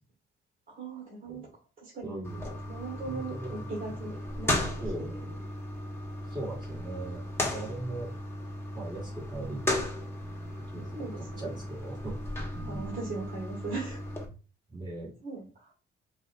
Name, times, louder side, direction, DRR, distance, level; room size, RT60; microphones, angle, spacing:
voice 1, 0.7-1.5 1.8-2.1 2.6-5.4 10.9-11.5 12.6-14.0 15.2-15.7, right 3 dB, 45° right, -4 dB, 1.7 m, -39 dB
voice 2, 2.0-2.5 3.0-3.6 4.8-5.1 6.3-7.2 7.5-8.1 8.7-9.8 10.7-10.9 11.4-12.2 12.5-12.9 14.7-15.1, right 2 dB, 20° right, -5 dB, 2.1 m, -39 dB
sound 1, 2.2-14.3, left 1 dB, 10° left, 1.2 m, -36 dB
5.3 x 2.6 x 2.6 m, 0.36 s
cardioid pair, 90°, 20 cm